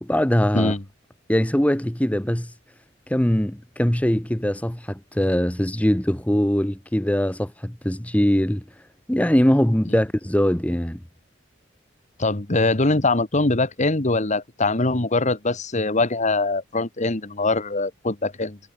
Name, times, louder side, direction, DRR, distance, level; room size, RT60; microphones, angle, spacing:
voice 1, 0.0-0.7 1.3-2.5 3.1-8.6 9.1-11.0, equal, 5° left, 1.0 m, -21 dB
voice 2, 12.2-18.6, left 2 dB, 40° left, 1.7 m, -22 dB
head